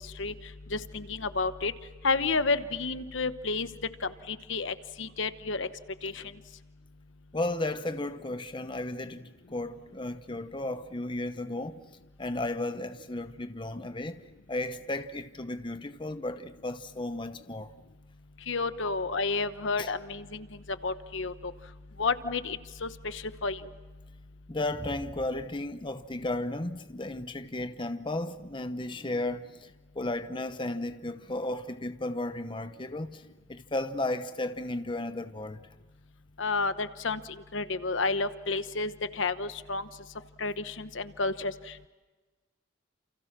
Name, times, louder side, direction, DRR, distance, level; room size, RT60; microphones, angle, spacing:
voice 1, 0.7-1.7 2.0-3.7 4.0-5.7 6.0-6.1 18.5-20.4 20.8-21.5 22.0-23.6 36.4-37.2 37.5-39.8 40.4-41.5, left 3 dB, 70° left, 1.1 m, -30 dB
voice 2, 7.3-11.8 12.2-14.2 14.5-17.7 18.8-18.9 19.8-19.9 24.5-29.5 29.9-33.2 33.5-35.6, left 2 dB, 25° left, 0.8 m, -34 dB
29.0 x 28.5 x 6.0 m
head